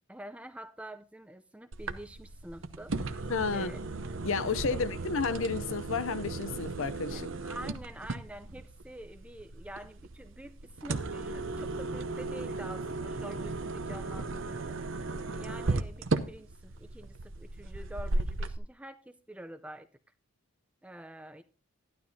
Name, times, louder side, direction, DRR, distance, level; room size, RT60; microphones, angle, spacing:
voice 1, 0.1-2.9 3.5-3.8 4.7-4.8 7.1-19.9 20.8-21.4, right 1 dB, 5° right, 0.5 m, -47 dB
sound 1, 1.7-18.6, right 3 dB, 55° right, 0.7 m, -36 dB
voice 2, 3.3-3.7 4.2-7.3, left 4 dB, 60° left, 0.6 m, -31 dB
12.5 x 12.0 x 2.7 m
head